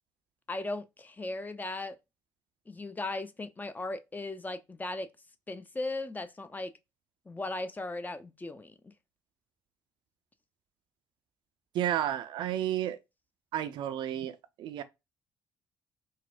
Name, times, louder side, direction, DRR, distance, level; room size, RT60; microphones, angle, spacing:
voice 1, 0.5-2.0 2.7-5.1 5.5-6.7 7.3-8.9, left 2 dB, 20° left, 0.4 m, -37 dB
voice 2, 11.7-13.0 13.5-14.8, right 11 dB, 55° right, 0.4 m, -32 dB
3.9 x 2.1 x 2.4 m
figure-of-eight pair, 50°, 9 cm